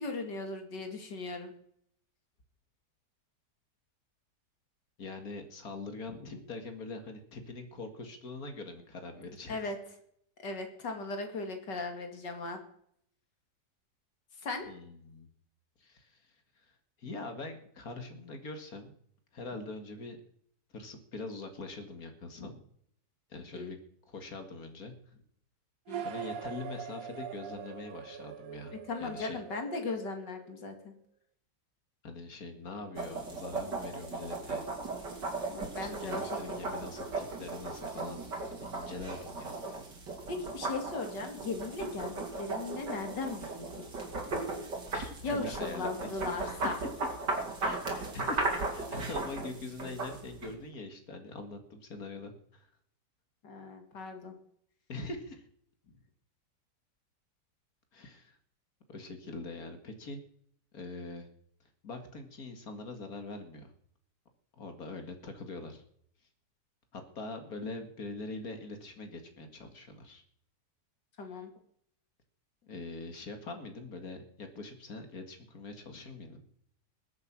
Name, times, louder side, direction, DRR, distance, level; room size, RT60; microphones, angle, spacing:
voice 1, 0.0-1.5 6.2-6.4 9.5-9.8 10.4-12.6 14.4-14.7 22.4-22.5 23.5-23.7 25.9-26.0 28.9-30.9 35.5-36.7 40.3-43.9 45.2-46.8 53.4-54.3 71.2-71.5, left 3 dB, 80° left, 5 dB, 3.0 m, -38 dB
voice 2, 5.0-9.6 14.7-15.3 15.8-16.2 16.6-16.7 17.0-18.9 19.3-20.2 20.7-22.5 23.3-23.8 24.1-24.9 26.0-29.4 32.0-34.6 35.8-39.5 41.9-42.0 44.9-46.6 47.6-52.7 54.9-55.4 57.9-58.4 58.9-60.2 60.7-61.3 61.8-63.7 64.6-65.8 66.9-70.2 72.6-76.4, left 3 dB, 55° left, 6 dB, 2.4 m, -43 dB
sound 1, 25.9-30.7, right 7 dB, 60° right, 1.2 m, -43 dB
sound 2, 33.0-50.5, right 3 dB, 80° right, 3.4 m, -37 dB
21.0 x 8.0 x 6.1 m, 0.67 s
omnidirectional pair, 1.9 m